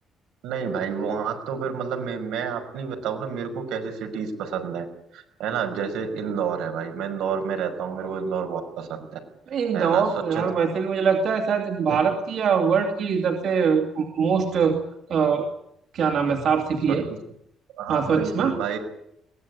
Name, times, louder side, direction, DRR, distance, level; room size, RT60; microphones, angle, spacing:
voice 1, 0.4-4.9 5.1-9.0 9.7-10.0 10.3-10.4 17.1-17.2 17.8-18.8, right 6 dB, 85° right, 4 dB, 5.7 m, -29 dB
voice 2, 9.5-14.8 15.1-15.5 15.9-17.0 17.9-18.5, right 6 dB, 50° right, 2 dB, 2.6 m, -23 dB
22.5 x 18.5 x 9.6 m, 0.78 s
cardioid pair, 170°, 0 cm